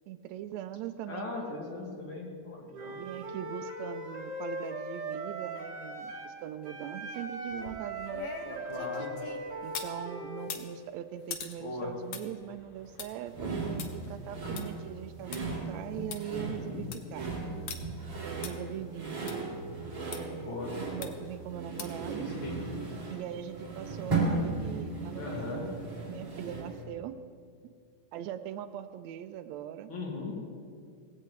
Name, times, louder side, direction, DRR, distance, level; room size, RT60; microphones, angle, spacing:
voice 1, 0.1-1.5 1.8-1.9 2.9-8.7 9.6-17.3 18.2-19.3 20.0-22.3 23.1-25.7 26.0-27.1 28.1-29.9, right 10 dB, 80° right, 9 dB, 1.7 m, -41 dB
voice 2, 1.1-3.0 8.6-9.1 11.6-11.9 16.3-16.9 20.4-20.7 22.4-22.6 25.1-25.7 29.9-30.3, left 3 dB, 45° left, -2 dB, 2.8 m, -38 dB
Wind instrument woodwind instrument, 2.7-6.4 6.6-10.5, right 2 dB, 50° right, 2.4 m, -39 dB
sound 1, 7.5-10.0 10.4-15.4 15.8-15.9 16.1-16.2 16.7-17.1 17.7-17.8 18.4-18.5 19.3-19.4 20.1-20.2 21.0-21.3 21.8-22.1 22.5-22.6, left 6 dB, 80° left, 1.0 m, -43 dB
sound 2, 13.3-26.8, right 3 dB, 30° right, 3.2 m, -36 dB
18.0 x 16.0 x 3.2 m, 2.2 s
omnidirectional pair, 3.4 m